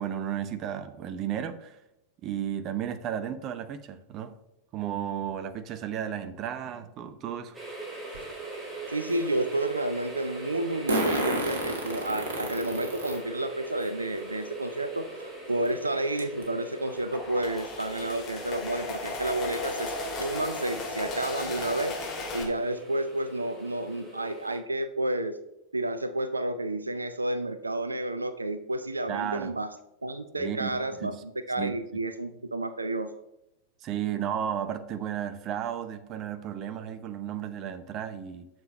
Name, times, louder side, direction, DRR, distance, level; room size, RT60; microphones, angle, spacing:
voice 1, 0.0-1.8 2.2-4.4 4.7-7.6 29.1-29.5 30.4-31.1 31.6-31.7 33.8-38.5, right 9 dB, 35° right, 10 dB, 0.7 m, -33 dB
sound 1, 7.5-24.6, right 2 dB, 15° right, 2.8 m, -42 dB
Fart, 8.1-8.2 10.9-13.2 13.8-13.9 15.2-15.3 15.7-15.8 16.2-16.4, right 1 dB, 65° right, 2.0 m, -29 dB
voice 2, 8.9-22.0 22.3-25.4 25.7-29.7 30.0-31.1 31.5-33.1, right 1 dB, 80° right, 11 dB, 0.5 m, -31 dB
sound 2, 16.8-22.4, left 2 dB, 30° left, 2.7 m, -35 dB
9.2 x 6.9 x 3.2 m, 0.86 s
figure-of-eight pair, 90°, 0 cm